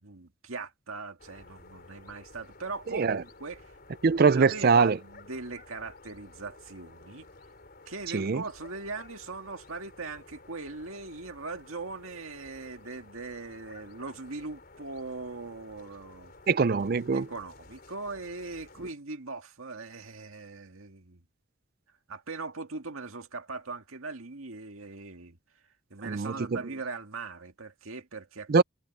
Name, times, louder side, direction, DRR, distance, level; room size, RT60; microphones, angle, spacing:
voice 1, 0.0-3.7 4.3-7.3 7.9-16.3 17.1-21.2 22.1-25.4 25.9-28.6, right 3 dB, 90° right, 2.0 m, -40 dB
sound 1, 1.2-18.9, left 2 dB, 45° left, 4.1 m, -53 dB
voice 2, 4.0-5.0 8.1-8.4 16.5-17.3 26.0-26.6 28.5-28.6, right 5 dB, 45° right, 0.4 m, -23 dB
head